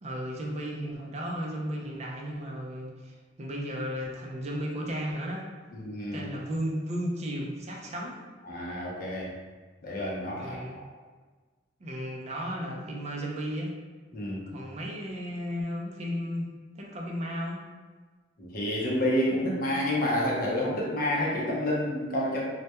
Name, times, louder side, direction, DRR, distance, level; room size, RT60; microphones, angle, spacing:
voice 1, 0.0-5.5 6.1-8.2 10.4-10.8 11.8-13.7 14.5-16.5 16.8-17.6, equal, 35° right, -1 dB, 0.4 m, -34 dB
voice 2, 5.7-6.3 8.5-9.3 9.8-10.8 14.1-14.5 18.4-22.4, left 1 dB, 50° left, -4 dB, 0.6 m, -29 dB
2.2 x 2.1 x 2.8 m, 1.4 s
head